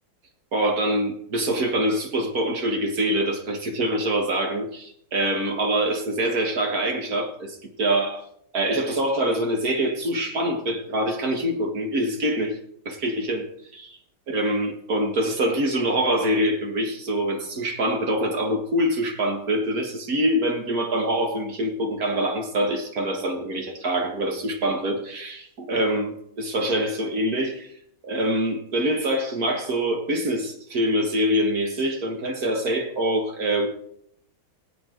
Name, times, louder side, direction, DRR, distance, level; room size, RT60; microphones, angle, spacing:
voice 1, 0.5-8.2 8.5-12.6 12.9-14.0 14.3-27.7 28.0-33.7, right 1 dB, 50° right, 4 dB, 2.0 m, -25 dB
20.5 x 8.1 x 3.9 m, 0.70 s
omnidirectional pair, 2.2 m